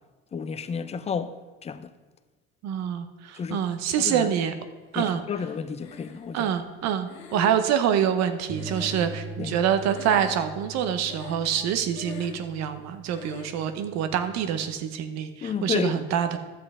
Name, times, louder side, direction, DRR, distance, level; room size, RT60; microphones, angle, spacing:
voice 1, 0.3-1.3 1.6-1.9 3.4-3.6 4.0-4.3 4.9-6.5 9.4-9.6 15.4-16.0, left 6 dB, 20° left, 0.5 m, -31 dB
voice 2, 2.6-4.5 4.9-5.2 6.3-16.4, right 9 dB, 60° right, 0.9 m, -26 dB
Breathing, 5.8-6.5 7.1-9.5 9.8-10.6 11.0-11.6 11.9-12.5 13.1-13.6, left 6 dB, 65° left, 1.3 m, -42 dB
Bass guitar, 8.5-14.7, right 3 dB, 25° right, 0.9 m, -42 dB
12.0 x 7.6 x 3.6 m
supercardioid pair, 105°, 30 cm